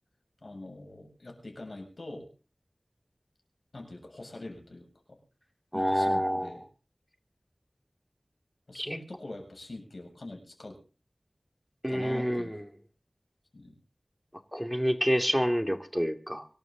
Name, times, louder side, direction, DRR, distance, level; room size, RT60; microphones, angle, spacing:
voice 1, 0.4-2.3 3.7-5.2 5.7-6.6 8.7-10.8 11.9-12.6 13.5-13.8, left 2 dB, 70° left, 2 dB, 7.4 m, -44 dB
voice 2, 5.7-6.5 8.7-9.0 11.8-12.6 14.5-16.5, equal, 5° right, 7 dB, 2.4 m, -28 dB
25.0 x 12.5 x 3.9 m, 0.37 s
wide cardioid pair, 55°, 0 cm